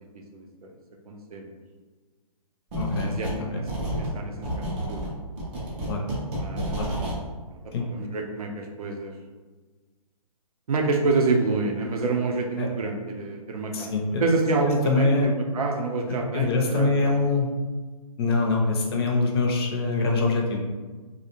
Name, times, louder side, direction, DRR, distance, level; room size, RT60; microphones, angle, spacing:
voice 1, 0.3-0.7 1.1-1.5 3.0-3.6 4.0-5.1 6.4-6.8 7.5-9.1 10.7-17.1, right 3 dB, 70° right, 2 dB, 0.5 m, -27 dB
sound 1, 2.7-3.4 3.7-7.2, right 1 dB, 15° right, 0.3 m, -30 dB
voice 2, 2.8-3.1 3.4-3.6 5.9-6.0 6.8-6.9 7.7-7.8 12.6-12.7 13.7-14.2 14.9-15.3 16.3-17.5 18.2-20.6, left 3 dB, 40° left, 0 dB, 0.5 m, -24 dB
2.5 x 2.1 x 2.8 m, 1.3 s
hypercardioid pair, 150°, 20 cm